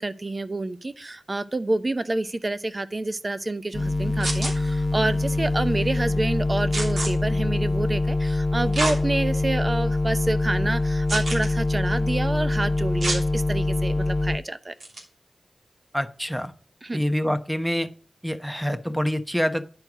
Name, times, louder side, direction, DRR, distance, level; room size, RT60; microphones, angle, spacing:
voice 1, 0.0-14.7 16.8-17.0, right 2 dB, 40° right, 12 dB, 0.7 m, -28 dB
sound 1, 3.7-14.4, left 2 dB, 35° left, 0.9 m, -24 dB
sound 2, 4.2-4.5 6.7-7.1 8.7-9.0 9.6-9.7 11.1-11.5 13.0-13.2 14.8-15.0, right 2 dB, 80° right, 3.0 m, -27 dB
voice 2, 15.9-16.5 16.9-17.9 18.2-19.6, equal, 5° right, 10 dB, 1.0 m, -26 dB
10.5 x 4.6 x 4.9 m, 0.43 s
cardioid pair, 55°, 0 cm